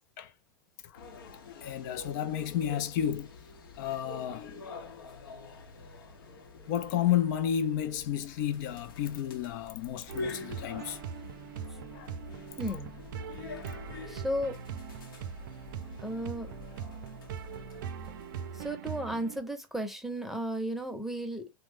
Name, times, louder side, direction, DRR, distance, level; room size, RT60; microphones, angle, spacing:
voice 1, 0.8-3.3 3.8-5.0 6.7-11.0 11.7-12.6 13.2-13.4, left 10 dB, 60° left, 0.4 m, -32 dB
sound 1, 1.0-18.7, left 3 dB, 80° left, 0.8 m, -47 dB
sound 2, 10.1-19.4, right 7 dB, 65° right, 0.4 m, -41 dB
voice 2, 12.6-12.9 14.0-14.6 16.0-16.5 18.5-21.5, equal, ahead, 0.7 m, -34 dB
2.9 x 2.1 x 3.4 m
hypercardioid pair, 95°, 12 cm